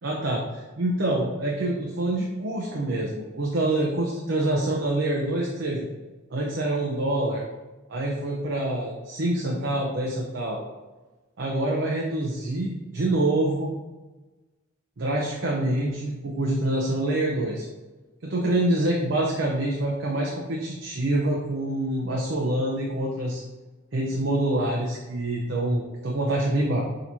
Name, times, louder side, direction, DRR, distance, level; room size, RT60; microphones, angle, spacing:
voice 1, 0.0-5.9 6.3-7.4 7.9-10.6 11.4-13.7 15.0-17.7 18.2-23.4 23.9-26.8, right 1 dB, 65° right, -3 dB, 0.6 m, -26 dB
6.4 x 2.9 x 2.7 m, 1.2 s
head